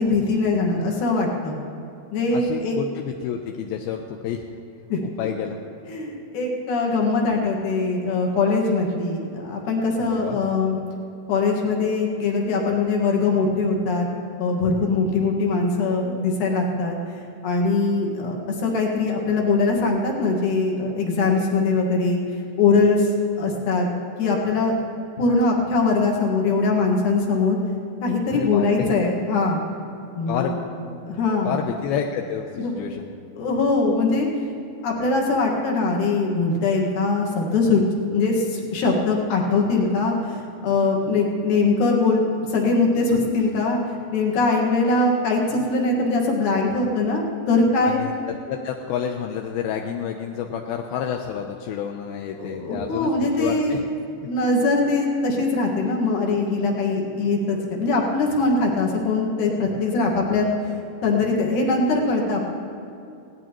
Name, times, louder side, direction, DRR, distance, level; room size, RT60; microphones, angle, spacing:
voice 1, 0.0-1.6 2.1-2.8 4.9-5.0 5.9-10.8 11.3-14.1 14.4-17.0 17.4-22.2 22.6-23.1 23.4-23.9 24.2-24.7 25.2-27.6 28.0-29.6 30.2-30.5 31.1-31.6 32.6-32.7 33.3-34.3 34.8-37.8 38.1-42.2 42.5-43.8 44.1-48.0 52.4-53.8 54.2-60.5 61.0-62.4, left 3 dB, 55° left, 0 dB, 2.7 m, -22 dB
voice 2, 2.3-4.4 5.0-5.6 10.0-10.4 28.3-29.0 30.3-30.9 31.5-33.0 47.8-53.8, left 8 dB, 80° left, 3 dB, 2.2 m, -29 dB
20.0 x 17.0 x 3.0 m, 2.7 s
omnidirectional pair, 5.0 m